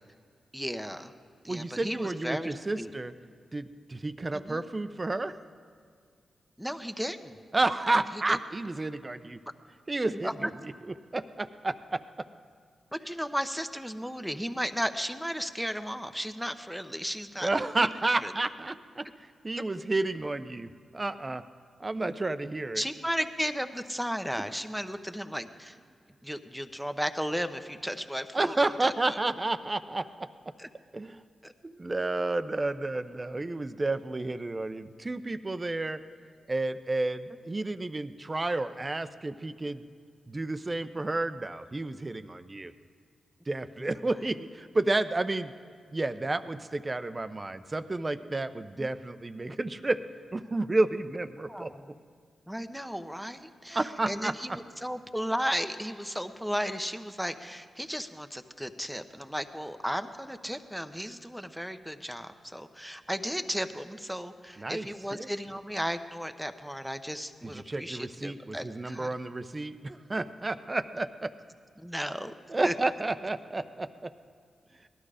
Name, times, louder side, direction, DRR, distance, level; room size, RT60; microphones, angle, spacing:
voice 1, 0.5-1.1 1.4-2.9 4.3-4.6 6.6-7.4 7.9-8.0 8.3-8.4 10.2-10.3 12.9-17.5 17.8-17.9 18.2-18.3 22.8-25.8 26.2-29.2 30.6-30.7 31.4-31.5 43.8-44.0 48.8-48.9 51.5-51.9 52.5-69.1 71.8-72.3 72.6-72.7, equal, ahead, 8 dB, 0.9 m, -35 dB
voice 2, 1.5-3.1 3.5-5.4 7.5-9.4 9.9-10.7 11.1-12.0 17.4-21.4 21.8-22.8 28.3-30.3 30.9-31.2 31.6-36.0 36.5-39.8 40.3-42.7 43.5-45.5 45.9-50.0 50.3-51.7 53.7-54.3 64.6-64.9 65.1-65.3 67.4-71.3 72.5-74.1, right 2 dB, 30° right, 11 dB, 0.7 m, -31 dB
18.0 x 12.0 x 5.0 m, 2.2 s
supercardioid pair, 50°, 0 cm